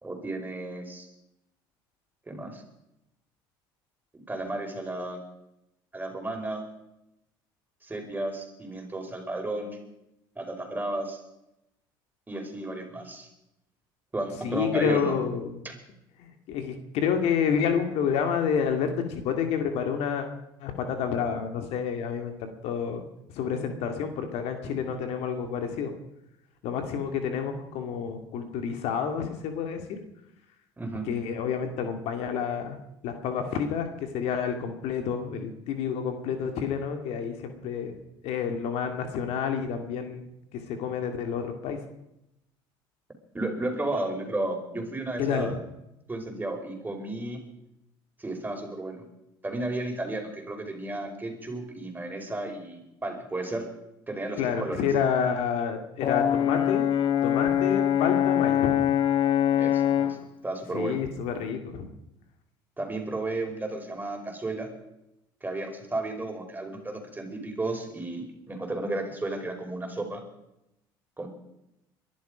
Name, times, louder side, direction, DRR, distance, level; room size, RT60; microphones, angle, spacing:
voice 1, 0.0-1.1 2.3-2.6 4.3-5.2 5.9-6.6 7.8-9.8 10.4-11.2 12.3-13.3 14.1-15.1 15.6-15.7 30.8-31.1 43.3-45.6 46.1-47.4 48.2-49.0 49.4-53.7 54.1-54.8 59.6-60.2 60.4-61.0 62.8-64.7 65.4-70.2 71.2-71.3, right 2 dB, 15° right, 3 dB, 5.1 m, -33 dB
voice 2, 14.4-15.6 16.2-20.3 20.6-23.0 23.3-25.9 26.6-30.0 31.1-32.8 33.0-37.9 38.2-41.8 45.2-45.6 54.4-56.9 57.2-58.9 60.7-61.9, left 7 dB, 65° left, 6 dB, 2.3 m, -29 dB
Brass instrument, 56.0-60.2, left 10 dB, 45° left, 1.0 m, -23 dB
22.5 x 12.0 x 5.1 m, 0.85 s
hypercardioid pair, 70°, 11 cm